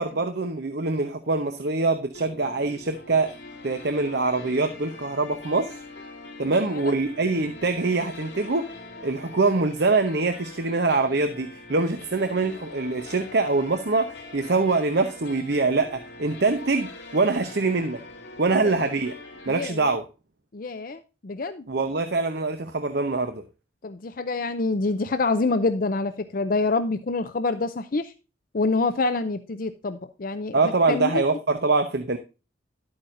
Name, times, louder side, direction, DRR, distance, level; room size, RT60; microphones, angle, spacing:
voice 1, 0.0-3.3 3.6-5.7 6.4-8.7 9.0-18.0 18.4-19.1 19.5-20.0 21.7-23.4 30.5-32.2, right 3 dB, 55° right, 0.8 m, -24 dB
sound 1, 2.1-19.6, left 2 dB, 60° left, 3.7 m, -43 dB
voice 2, 19.5-19.9 20.5-21.7 23.8-28.1 28.5-30.6 30.9-31.2, left 3 dB, 45° left, 0.5 m, -26 dB
11.5 x 8.7 x 2.5 m
head